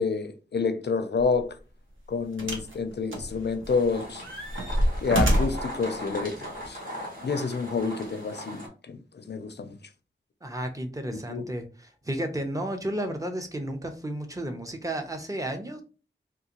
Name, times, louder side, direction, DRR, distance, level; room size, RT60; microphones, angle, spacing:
voice 1, 0.0-1.6 2.1-4.2 5.0-6.8 7.2-9.8 11.1-11.4, left 4 dB, 60° left, 0.5 m, -29 dB
sound 1, 1.2-1.4 2.4-2.7 3.1-3.8 4.2-5.7 6.6-6.7, equal, 85° right, 0.8 m, -26 dB
sound 2, 3.7-8.7, equal, 45° right, 1.4 m, -39 dB
voice 2, 10.4-15.8, right 1 dB, 15° right, 0.7 m, -32 dB
3.7 x 2.6 x 2.9 m
wide cardioid pair, 75°, 20 cm